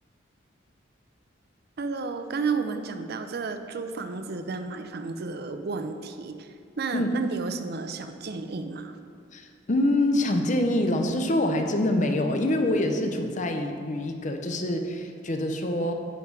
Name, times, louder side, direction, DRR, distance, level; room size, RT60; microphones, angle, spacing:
voice 1, 1.8-8.9, right 4 dB, 55° right, 8 dB, 0.5 m, -32 dB
voice 2, 9.3-15.9, left 1 dB, 40° left, 5 dB, 0.6 m, -25 dB
9.3 x 5.5 x 4.7 m, 2.2 s
head